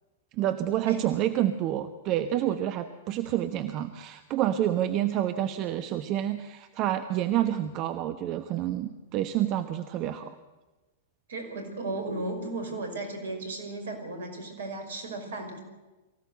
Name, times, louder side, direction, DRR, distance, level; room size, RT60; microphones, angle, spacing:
voice 1, 0.3-10.3, right 12 dB, 40° right, 9 dB, 1.1 m, -28 dB
voice 2, 11.3-15.6, right 2 dB, 65° right, 6 dB, 5.6 m, -35 dB
23.5 x 16.0 x 8.0 m, 1.1 s
figure-of-eight pair, 100°, 0 cm